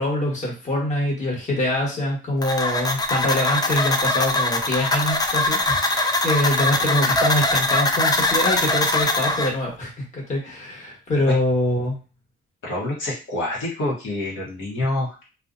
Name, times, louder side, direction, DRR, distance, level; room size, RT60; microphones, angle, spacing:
voice 1, 0.0-12.0, left 1 dB, 40° left, -3 dB, 1.2 m, -24 dB
sound 1, 2.4-9.5, left 2 dB, 20° left, 0.4 m, -22 dB
voice 2, 12.6-15.2, left 1 dB, 80° left, -5 dB, 0.9 m, -27 dB
2.4 x 2.1 x 2.5 m, 0.34 s
cardioid pair, 90°, 20 cm